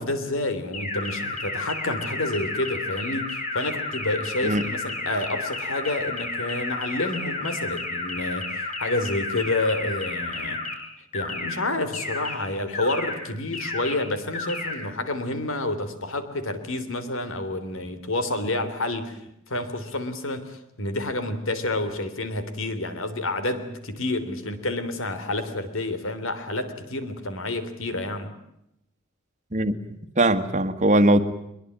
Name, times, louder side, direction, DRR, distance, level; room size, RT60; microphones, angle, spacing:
voice 1, 0.0-10.6 11.1-19.2 19.5-28.3, left 2 dB, 65° left, 3.5 m, -29 dB
sound 1, 0.7-10.7 11.1-11.5 11.9-12.3 12.7-13.1 13.5-13.9 14.3-14.7, left 3 dB, 40° left, 6.6 m, -31 dB
voice 2, 29.5-31.2, right 1 dB, 35° right, 1.8 m, -21 dB
23.5 x 22.0 x 8.8 m
head